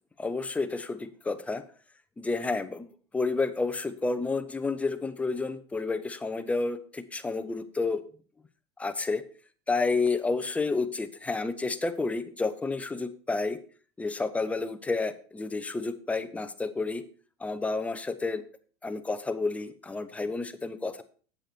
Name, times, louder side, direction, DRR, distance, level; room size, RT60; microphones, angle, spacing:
voice 1, 0.2-1.6 2.2-8.0 8.8-9.2 9.7-13.6 14.0-17.0 17.4-18.4 18.8-21.0, left 3 dB, 10° left, 11 dB, 0.7 m, -30 dB
7.9 x 7.8 x 4.3 m, 0.42 s
supercardioid pair, 125°, 14 cm